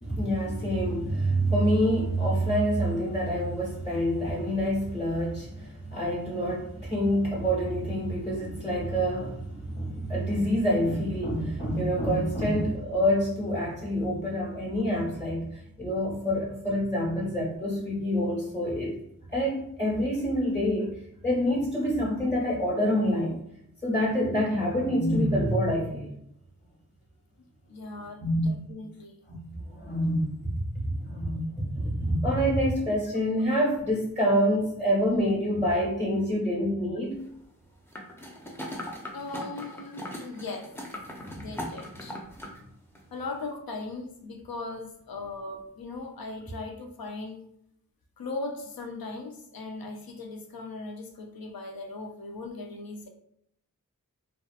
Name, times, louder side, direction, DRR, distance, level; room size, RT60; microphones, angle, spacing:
voice 1, 0.0-19.0 19.3-21.0 21.2-23.4 23.8-26.1 28.2-28.5 29.3-29.4 29.8-30.5 31.0-37.2 41.2-41.5, equal, 30° left, -5 dB, 1.1 m, -27 dB
voice 2, 27.7-29.2 39.1-40.7 41.4-42.2 43.1-47.4 48.2-53.1, left 3 dB, 80° left, 4 dB, 0.5 m, -38 dB
sound 1, 37.9-42.6 43.0-43.1, left 1 dB, 5° left, 0.5 m, -39 dB
2.7 x 2.3 x 2.3 m, 0.73 s
wide cardioid pair, 40°, 35 cm